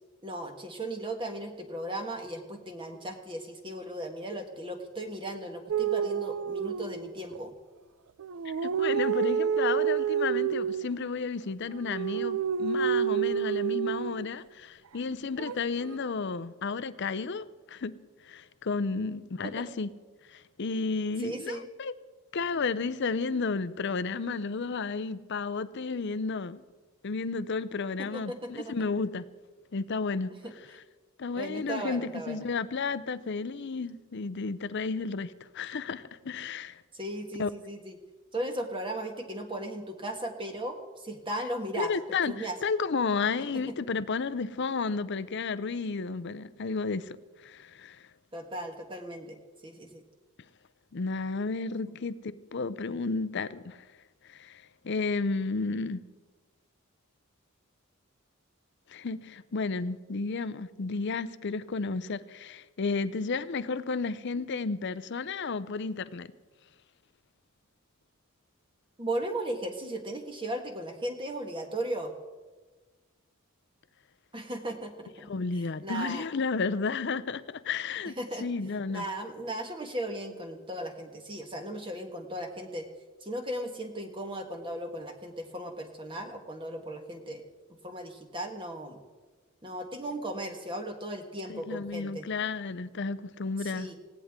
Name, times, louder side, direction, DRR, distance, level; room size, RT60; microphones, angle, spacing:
voice 1, 0.2-7.5 19.4-19.7 21.2-21.7 28.0-28.7 30.4-30.5 31.3-32.4 36.9-38.0 38.3-41.9 42.2-42.6 43.5-43.7 48.3-49.4 49.6-50.0 51.8-51.9 69.0-72.1 74.3-75.3 75.5-76.3 78.2-78.4 78.9-82.9 83.2-87.4 87.7-89.0 89.6-92.2 93.6-94.0, right 1 dB, 25° right, 4 dB, 1.6 m, -36 dB
sound 1, 5.7-7.4 8.2-10.8 11.7-14.3 15.4-16.0, right 8 dB, 75° right, 0.4 m, -29 dB
voice 2, 8.4-18.0 18.2-19.9 20.3-21.9 22.3-26.6 27.0-29.3 29.7-30.3 31.2-36.8 37.4-37.5 41.8-47.2 47.4-48.0 50.9-53.8 54.3-56.0 58.9-66.3 75.3-79.0 91.5-93.9, left 4 dB, 55° left, 15 dB, 0.6 m, -32 dB
19.5 x 16.5 x 3.7 m, 1.3 s
head